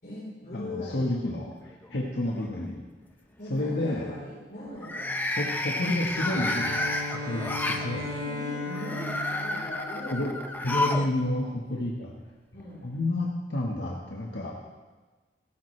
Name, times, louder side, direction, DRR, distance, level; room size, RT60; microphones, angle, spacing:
voice 1, 0.0-1.2 3.4-5.9 7.9-10.4 12.5-12.8, left 1 dB, 55° left, -9 dB, 4.1 m, -40 dB
voice 2, 0.5-2.8 3.5-4.1 5.3-8.0 10.1-10.3 10.6-12.1 12.8-14.5, left 1 dB, 90° left, -2 dB, 1.5 m, -30 dB
sound 1, 1.3-1.9 2.3-2.7 4.7-7.9 8.7-11.1 11.4-11.5 12.6-12.7, left 2 dB, 10° left, 0.7 m, -31 dB
Bowed string instrument, 6.3-10.4, left 2 dB, 70° right, 4.4 m, -36 dB
17.0 x 14.5 x 3.3 m, 1.3 s
head